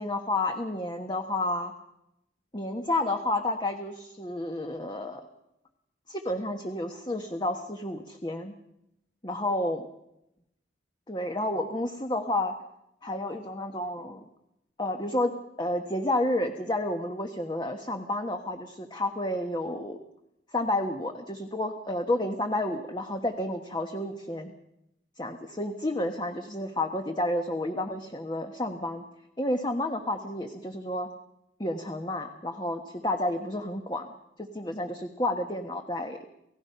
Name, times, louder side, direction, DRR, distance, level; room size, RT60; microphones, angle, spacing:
voice 1, 0.0-1.7 2.5-5.3 6.1-8.5 9.2-9.9 11.1-12.5 13.0-14.3 14.8-20.0 20.5-24.5 25.2-29.0 29.4-31.1 31.6-34.1 34.4-36.2, left 1 dB, 25° left, 5 dB, 1.4 m, -30 dB
29.5 x 17.0 x 5.7 m, 0.84 s
head